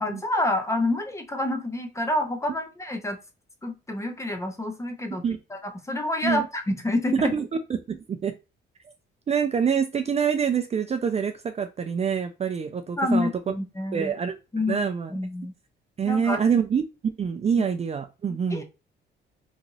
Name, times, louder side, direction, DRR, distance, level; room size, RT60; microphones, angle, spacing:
voice 1, 0.0-3.2 3.6-5.2 5.5-7.3 13.0-14.1 14.5-15.5 16.1-16.4 17.6-17.7 18.3-18.6, left 2 dB, 15° left, 6 dB, 0.6 m, -28 dB
voice 2, 7.1-8.3 9.3-13.5 13.9-14.4 14.7-15.1 16.0-18.6, right 7 dB, 35° right, 7 dB, 0.4 m, -26 dB
3.0 x 2.5 x 2.6 m, 0.28 s
cardioid pair, 90°, 20 cm